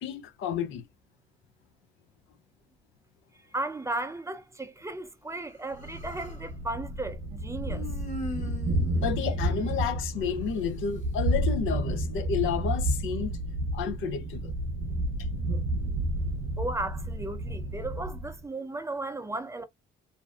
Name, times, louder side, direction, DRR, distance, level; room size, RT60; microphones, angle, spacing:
voice 1, 0.0-0.8 8.9-13.3 13.7-14.5, left 7 dB, 80° left, 0.5 m, -31 dB
voice 2, 3.5-7.8 16.6-19.6, right 2 dB, 15° right, 0.5 m, -35 dB
Human voice, 5.5-6.5 7.6-10.4, left 2 dB, 40° left, 1.0 m, -42 dB
Thunder, 5.8-18.4, right 1 dB, 75° right, 0.6 m, -31 dB
2.6 x 2.0 x 2.3 m
cardioid pair, 90°, 20 cm